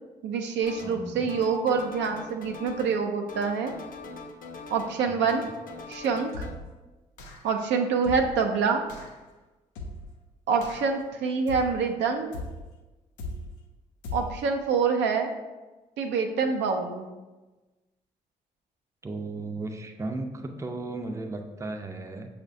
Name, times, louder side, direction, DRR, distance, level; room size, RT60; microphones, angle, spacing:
voice 1, 0.2-3.7 4.7-5.4 5.9-6.5 7.4-8.8 10.5-12.3 14.1-15.3 16.0-17.1, right 5 dB, 75° right, 4 dB, 0.4 m, -26 dB
sound 1, 0.6-1.0 1.3-3.0 3.3-5.0 5.3-6.5, left 3 dB, 50° left, 0.7 m, -42 dB
voice 2, 0.8-1.3 5.1-5.2 8.1-8.2 19.0-22.3, right 2 dB, 15° right, 4 dB, 0.5 m, -35 dB
sound 2, 6.3-6.8 7.2-7.6 8.0-8.5 8.9-9.2 9.8-10.2 10.6-11.0 11.5-11.9 12.3-12.7 13.2-13.6 14.0-14.5, left 1 dB, 85° left, 0.4 m, -39 dB
6.0 x 2.1 x 2.6 m, 1.2 s
hypercardioid pair, 45°, 19 cm